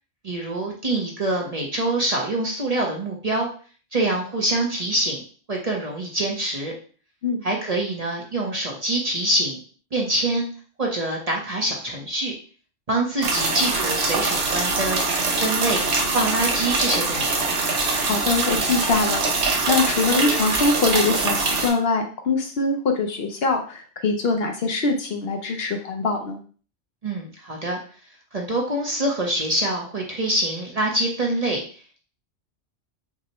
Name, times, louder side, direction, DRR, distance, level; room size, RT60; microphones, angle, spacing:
voice 1, 0.2-3.5 3.9-5.2 5.5-6.7 7.4-9.6 9.9-10.5 10.8-12.3 12.9-15.0 15.4-17.5 27.0-27.8 28.3-31.6, right 1 dB, 40° right, -1 dB, 0.7 m, -25 dB
sound 1, 13.2-21.7, right 3 dB, 80° right, 1.1 m, -23 dB
voice 2, 18.0-19.2 19.7-26.4, left 3 dB, 65° left, 4 dB, 0.8 m, -23 dB
6.0 x 2.1 x 2.9 m, 0.40 s
omnidirectional pair, 1.2 m